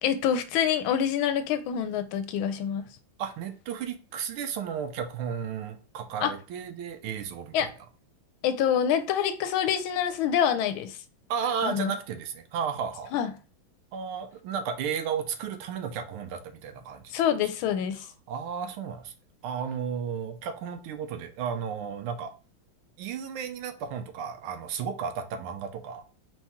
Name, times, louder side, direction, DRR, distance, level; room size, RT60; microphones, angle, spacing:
voice 1, 0.0-2.9 6.2-6.3 7.5-7.7 8.4-11.0 11.6-11.9 13.1-13.3 17.1-18.0, left 9 dB, 80° left, 1.3 m, -26 dB
voice 2, 3.2-7.7 11.3-13.1 13.9-17.1 18.3-19.1 19.4-22.3 23.0-26.0, right 7 dB, 90° right, 1.6 m, -33 dB
4.3 x 3.1 x 3.5 m
omnidirectional pair, 2.3 m